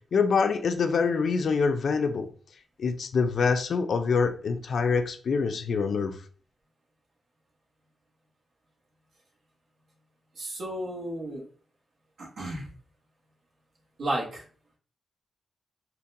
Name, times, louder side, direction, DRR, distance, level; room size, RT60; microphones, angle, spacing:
voice 1, 0.1-2.3 2.8-6.1, left 5 dB, 65° left, 0.4 m, -25 dB
voice 2, 10.4-11.4 12.2-12.6 14.0-14.4, right 1 dB, 70° right, 1.1 m, -32 dB
3.8 x 2.2 x 2.6 m
wide cardioid pair, 130°, 0 cm